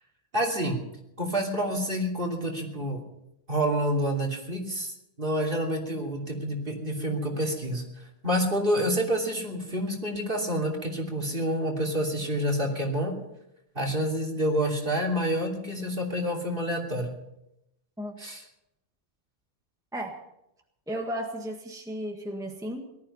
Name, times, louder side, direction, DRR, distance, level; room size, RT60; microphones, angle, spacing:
voice 1, 0.3-0.8 1.2-3.0 3.5-13.1 13.7-17.1 18.2-18.4, equal, 45° right, 2 dB, 3.2 m, -28 dB
voice 2, 20.9-22.9, equal, 5° right, 1 dB, 1.7 m, -34 dB
18.5 x 13.0 x 5.6 m, 0.84 s
omnidirectional pair, 1.3 m